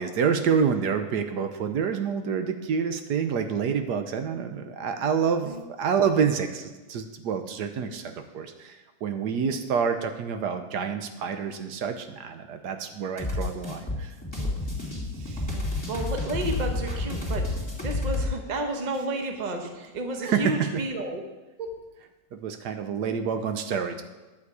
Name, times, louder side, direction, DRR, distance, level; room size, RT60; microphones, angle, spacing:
voice 1, 0.0-14.1 15.2-15.5 20.2-20.8 22.3-24.0, right 6 dB, 75° right, 7 dB, 1.3 m, -28 dB
sound 1, 13.2-18.3, left 2 dB, 15° left, 2.4 m, -30 dB
voice 2, 15.5-17.4 17.8-21.2 21.6-21.7, right 1 dB, 30° right, 4 dB, 1.0 m, -32 dB
11.0 x 7.1 x 4.8 m, 1.2 s
omnidirectional pair, 1.8 m